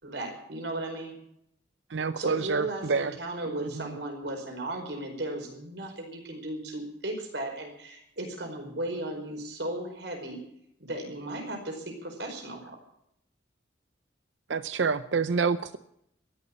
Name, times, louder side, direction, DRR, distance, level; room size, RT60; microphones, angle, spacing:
voice 1, 0.0-1.2 2.2-10.4 10.8-12.8, right 1 dB, 70° right, 3 dB, 4.9 m, -36 dB
voice 2, 1.9-3.1 3.5-4.0 14.5-15.8, right 5 dB, 85° right, 13 dB, 0.6 m, -28 dB
14.0 x 11.0 x 8.8 m, 0.74 s
head